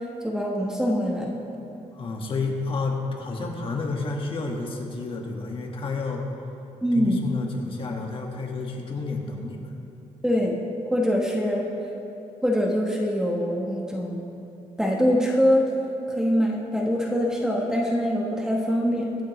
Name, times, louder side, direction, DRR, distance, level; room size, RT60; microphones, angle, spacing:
voice 1, 0.2-1.4 6.8-7.2 10.2-10.6 10.9-11.7 12.4-14.2 14.8-15.6 16.1-19.2, equal, 5° right, -1 dB, 1.1 m, -23 dB
voice 2, 1.9-6.2 6.9-9.7, left 3 dB, 40° left, 0 dB, 1.5 m, -30 dB
23.0 x 7.8 x 3.1 m, 3.0 s
cardioid pair, 135°, 13 cm